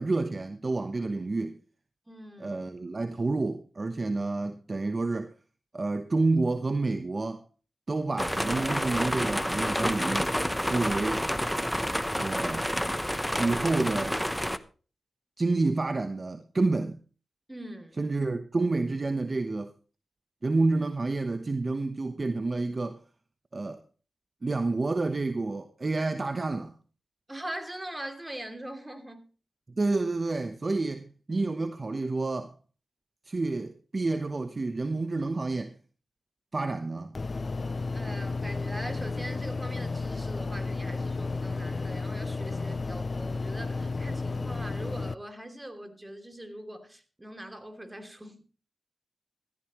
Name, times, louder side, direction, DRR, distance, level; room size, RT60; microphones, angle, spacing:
voice 1, 0.0-1.6 2.4-5.3 5.7-7.4 7.9-11.3 12.2-12.7 13.4-14.2 15.4-17.0 18.0-19.7 20.4-23.0 23.5-23.8 24.4-26.7 29.8-32.5 33.3-35.7 36.5-37.1, right 3 dB, 35° right, 1.0 m, -29 dB
voice 2, 2.1-2.5 17.5-18.0 27.3-29.2 37.9-48.4, right 1 dB, 15° right, 2.9 m, -42 dB
sound 1, 8.2-14.6, equal, 5° left, 0.9 m, -29 dB
sound 2, 37.1-45.1, left 3 dB, 40° left, 0.5 m, -32 dB
16.0 x 13.5 x 3.1 m
cardioid pair, 75°, 0 cm